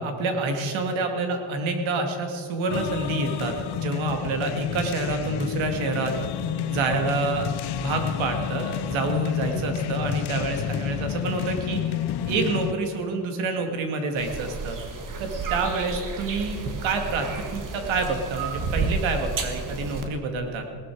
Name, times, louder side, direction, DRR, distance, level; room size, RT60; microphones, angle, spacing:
voice 1, 0.0-6.2 6.7-11.8 12.3-14.8 15.2-20.6, right 3 dB, 85° right, 5 dB, 2.3 m, -28 dB
sound 1, 2.7-12.7, left 10 dB, 60° left, 0.8 m, -30 dB
sound 2, 14.2-20.0, right 4 dB, 45° right, 1.7 m, -31 dB
18.0 x 13.0 x 4.8 m, 2.3 s
cardioid pair, 140°, 46 cm